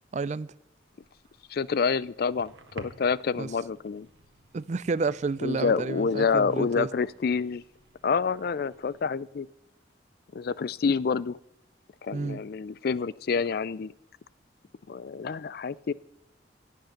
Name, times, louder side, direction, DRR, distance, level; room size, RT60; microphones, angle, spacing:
voice 1, 0.1-0.5 3.4-3.5 4.5-6.9 12.1-12.4, right 4 dB, 40° right, 0.4 m, -30 dB
sound 1, 0.9-9.0, right 2 dB, 70° right, 1.3 m, -53 dB
voice 2, 1.5-4.1 5.4-7.6 8.0-9.5 10.3-11.4 12.0-13.9 14.9-15.9, left 5 dB, 55° left, 0.4 m, -28 dB
17.0 x 7.9 x 5.8 m
head